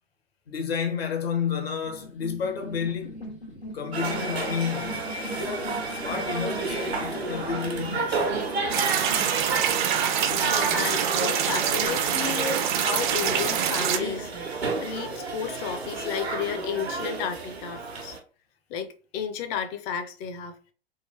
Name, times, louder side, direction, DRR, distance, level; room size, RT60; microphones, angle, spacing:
voice 1, 0.5-3.2 3.7-8.4, left 6 dB, 70° left, 1.2 m, -31 dB
sound 1, 1.9-11.9, equal, 90° left, 1.5 m, -41 dB
sound 2, 3.9-18.2, right 4 dB, 80° right, 1.0 m, -31 dB
sound 3, 8.7-14.0, right 9 dB, 50° right, 0.6 m, -25 dB
voice 2, 10.3-18.2 18.7-20.5, left 7 dB, 30° left, 0.6 m, -33 dB
3.6 x 2.5 x 3.3 m
figure-of-eight pair, 105°, 31 cm